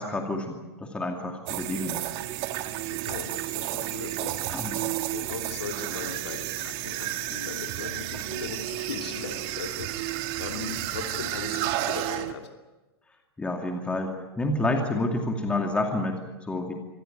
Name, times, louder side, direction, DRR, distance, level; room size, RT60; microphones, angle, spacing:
voice 1, 0.0-2.0 3.7-3.8 4.5-4.9 13.4-16.7, left 2 dB, 10° left, 3 dB, 2.5 m, -29 dB
sound 1, 1.5-12.3, right 14 dB, 40° right, 1.7 m, -32 dB
voice 2, 2.9-12.5, left 6 dB, 75° left, 4 dB, 2.8 m, -39 dB
25.0 x 16.0 x 9.2 m, 1.1 s
hypercardioid pair, 125°, 14 cm